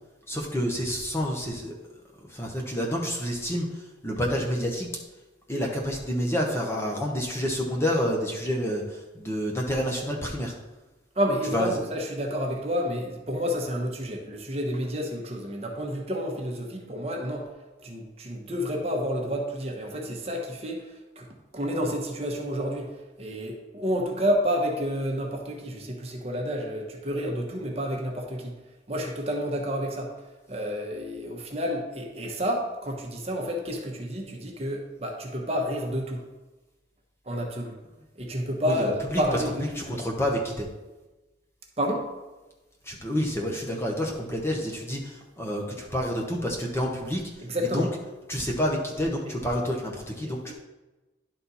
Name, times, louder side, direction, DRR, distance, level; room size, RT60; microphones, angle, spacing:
voice 1, 0.3-1.7 2.3-4.9 5.5-10.5 11.5-11.8 38.7-39.2 39.8-40.7 42.8-47.3 47.7-47.9 48.3-50.5, equal, 15° left, -1 dB, 1.0 m, -28 dB
voice 2, 11.1-17.5 17.8-21.3 21.5-28.5 28.9-30.1 30.5-36.2 37.2-37.8 38.1-40.0 41.8-42.1 47.4-47.9 49.3-49.4 50.2-50.5, equal, 35° right, 0 dB, 1.1 m, -30 dB
10.5 x 4.3 x 4.1 m, 1.1 s
head